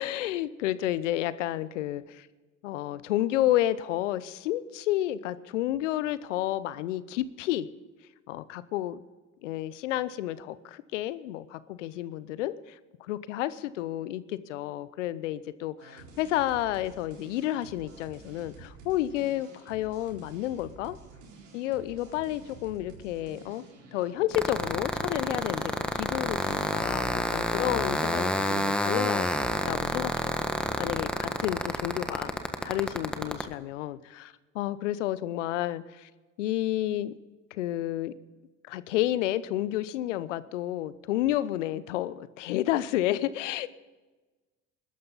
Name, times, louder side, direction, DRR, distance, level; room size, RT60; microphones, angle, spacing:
voice 1, 0.0-2.3 2.6-7.7 8.3-9.0 9.4-21.0 21.5-23.6 23.9-29.3 29.7-32.3 32.6-36.1 36.4-37.1 37.5-38.1 38.7-43.7, left 14 dB, 85° left, 17 dB, 0.8 m, -31 dB
sound 1, 15.8-27.2, right 4 dB, 80° right, 4.1 m, -50 dB
sound 2, 24.3-33.4, equal, 5° left, 1.5 m, -28 dB
21.0 x 12.0 x 4.0 m, 1.2 s
hypercardioid pair, 70°, 36 cm